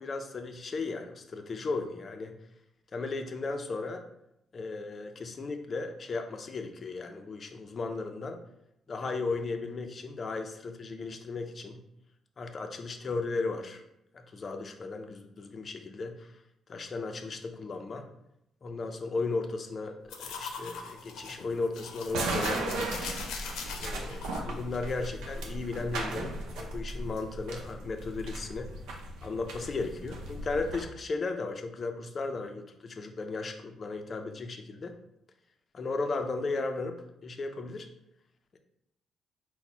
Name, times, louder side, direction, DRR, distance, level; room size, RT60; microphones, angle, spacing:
voice 1, 0.0-2.4 2.9-4.0 4.5-8.4 8.9-11.8 12.4-13.8 14.1-16.3 16.7-18.1 18.6-23.2 23.8-28.7 29.2-34.9 35.7-37.9 38.5-38.6, left 3 dB, 40° left, 6 dB, 0.5 m, -35 dB
sound 1, 20.1-24.4, left 5 dB, 90° left, 0.5 m, -41 dB
sound 2, 22.1-30.8, right 2 dB, 90° right, 0.6 m, -36 dB
4.1 x 2.1 x 4.4 m, 0.80 s
cardioid pair, 90°, 0 cm